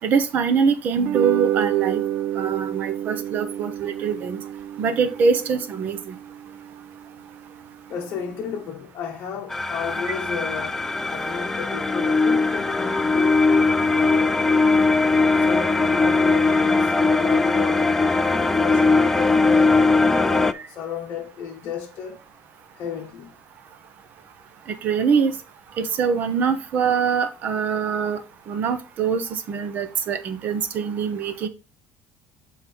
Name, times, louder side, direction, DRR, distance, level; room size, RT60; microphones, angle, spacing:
voice 1, 0.0-2.0 2.4-4.4 4.8-6.2 20.5-20.6 24.8-25.4 25.8-28.2 28.5-31.5, right 6 dB, 40° right, 1.0 m, -23 dB
sound 1, 1.0-7.5, right 12 dB, 60° right, 0.6 m, -29 dB
voice 2, 7.9-13.5 13.9-14.4 15.4-17.9 18.3-22.2 22.8-23.3, left 7 dB, 45° left, 1.0 m, -33 dB
sound 2, 9.5-20.5, left 3 dB, 10° left, 0.3 m, -20 dB
7.5 x 3.8 x 4.5 m
cardioid pair, 165°, 5 cm